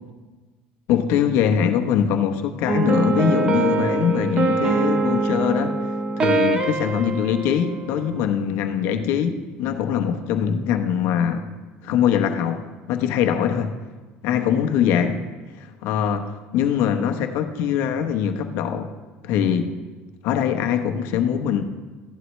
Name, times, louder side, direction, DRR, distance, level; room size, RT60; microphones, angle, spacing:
voice 1, 0.9-5.7 6.2-11.5 11.8-13.7 14.2-15.3 15.6-18.9 19.2-19.7 20.2-21.6, left 8 dB, 70° left, 6 dB, 0.9 m, -22 dB
sound 1, 2.7-8.3, right 3 dB, 25° right, 0.8 m, -23 dB
15.0 x 11.0 x 3.2 m, 1.3 s
cardioid pair, 155°, 4 cm